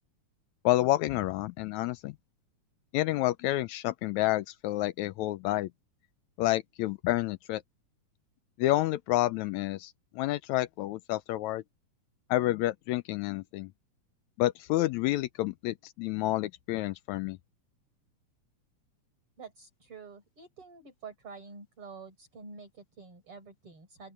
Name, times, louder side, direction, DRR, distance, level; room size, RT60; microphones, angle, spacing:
voice 1, 0.6-2.1 2.9-5.7 6.4-7.6 8.6-11.6 12.3-13.7 14.4-17.4, left 16 dB, 80° left, 1.7 m, -29 dB
voice 2, 19.4-24.1, right 4 dB, 40° right, 5.5 m, -48 dB
open air
omnidirectional pair, 3.7 m